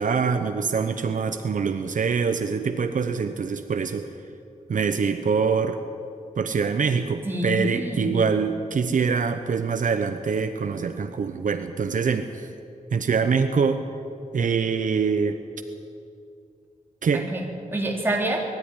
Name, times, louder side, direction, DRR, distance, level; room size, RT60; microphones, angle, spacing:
voice 1, 0.0-4.1 4.7-5.8 6.4-12.5 12.9-13.8 14.3-15.4 17.0-17.3, right 5 dB, 75° right, 8 dB, 0.9 m, -24 dB
voice 2, 7.2-8.1 17.3-18.4, right 1 dB, 15° right, -2 dB, 3.6 m, -27 dB
21.0 x 13.5 x 10.0 m, 2.5 s
wide cardioid pair, 175°, 14 cm